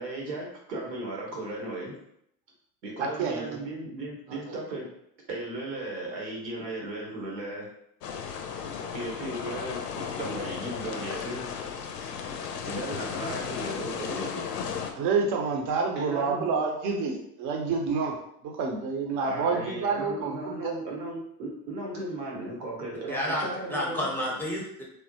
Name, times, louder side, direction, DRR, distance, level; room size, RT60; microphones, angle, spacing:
voice 1, 0.0-2.0 2.8-4.9 5.3-7.7 8.9-11.5 12.7-14.4 16.0-16.6 19.2-24.1, right 2 dB, 85° right, -2 dB, 1.1 m, -36 dB
voice 2, 3.0-3.6 4.3-4.4 14.9-18.1 18.4-20.8, right 4 dB, 40° right, 1 dB, 0.7 m, -28 dB
sound 1, 8.0-14.9, left 6 dB, 75° left, 0.5 m, -35 dB
voice 3, 23.1-24.8, equal, 5° left, -2 dB, 0.7 m, -30 dB
3.3 x 2.1 x 2.8 m, 0.73 s
hypercardioid pair, 85°, 49 cm